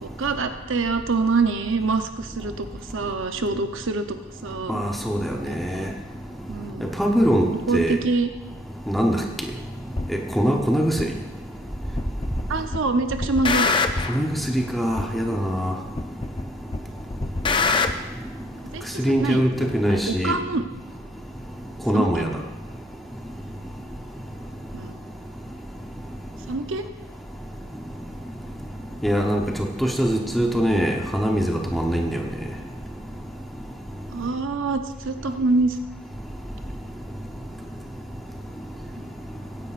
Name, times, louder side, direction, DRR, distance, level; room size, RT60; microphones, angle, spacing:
voice 1, 0.0-2.7 2.9-4.2 4.4-4.8 5.5-5.9 6.5-6.9 7.5-8.3 12.5-13.7 18.7-20.7 21.9-22.1 24.7-24.9 26.5-26.8 34.1-35.8 39.0-39.1, right 3 dB, 75° right, 7 dB, 0.7 m, -25 dB
voice 2, 4.7-5.3 5.6-5.9 6.8-7.5 7.7-8.0 8.9-9.2 10.1-11.1 14.1-14.3 14.5-15.7 19.0-20.4 21.9-22.3 29.0-32.2, equal, ahead, 1 dB, 0.8 m, -22 dB
sound 1, 10.0-10.1 11.0-11.1 12.0-12.4 12.7-14.2 15.0-15.1 16.0-16.4 16.7-17.9, left 4 dB, 25° left, 0.4 m, -23 dB
16.0 x 10.0 x 2.5 m, 1.2 s
head